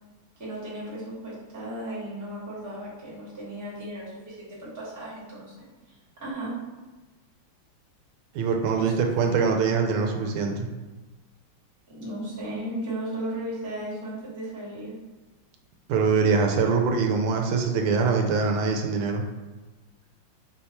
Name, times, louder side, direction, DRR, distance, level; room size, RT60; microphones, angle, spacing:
voice 1, 0.4-5.9 6.2-6.6 8.7-9.0 11.9-15.0, right 1 dB, 10° right, -7 dB, 1.0 m, -35 dB
voice 2, 8.3-10.7 15.9-19.2, right 5 dB, 85° right, 3 dB, 1.5 m, -23 dB
4.8 x 2.3 x 4.2 m, 1.2 s
omnidirectional pair, 2.3 m